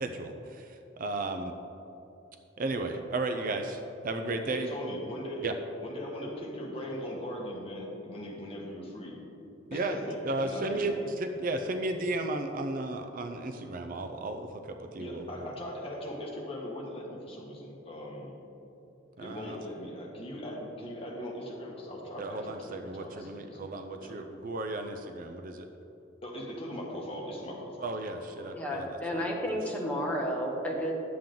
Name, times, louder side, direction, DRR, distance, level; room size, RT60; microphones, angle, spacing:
voice 1, 0.0-1.5 2.6-4.7 5.4-5.5 9.7-10.0 10.2-15.5 19.2-19.6 22.2-25.7 27.8-29.6, right 2 dB, 45° right, 6 dB, 0.5 m, -34 dB
voice 2, 4.5-5.5 5.8-9.2 9.7-11.1 15.0-18.4 19.2-23.7 24.0-24.2 26.2-27.9 28.3-28.6, equal, 30° left, -2 dB, 1.5 m, -40 dB
voice 3, 28.5-30.9, equal, 5° left, -3 dB, 1.2 m, -32 dB
10.5 x 7.4 x 3.8 m, 2.9 s
head